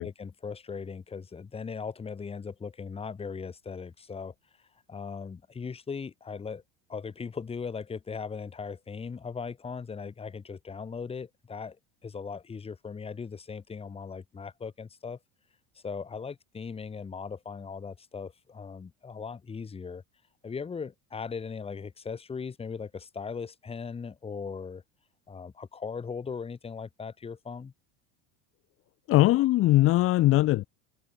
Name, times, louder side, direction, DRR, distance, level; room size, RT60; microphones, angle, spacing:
voice 1, 0.0-4.3 4.9-6.6 6.9-11.8 12.0-15.2 15.8-20.0 20.4-24.8 25.3-27.7, left 5 dB, 20° left, 2.2 m, -38 dB
voice 2, 29.1-30.7, left 16 dB, 45° left, 1.0 m, -21 dB
supercardioid pair, 130°, 31 cm